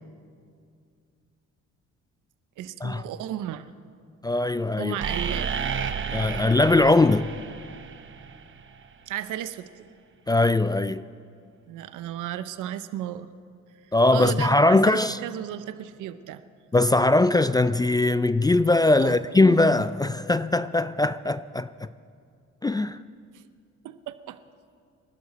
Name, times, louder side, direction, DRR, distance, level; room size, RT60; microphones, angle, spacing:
voice 1, 2.6-3.7 4.8-5.5 9.1-9.9 11.7-13.3 14.1-16.4 19.0-19.2 23.3-23.4 23.8-24.4, right 12 dB, 85° right, 0.7 m, -34 dB
voice 2, 4.2-5.0 6.1-7.3 10.3-11.1 13.9-15.2 16.7-21.9 22.6-23.0, left 2 dB, 15° left, 0.3 m, -21 dB
sound 1, 5.0-8.9, right 6 dB, 40° right, 0.9 m, -32 dB
26.5 x 11.5 x 4.2 m
cardioid pair, 90°, 30 cm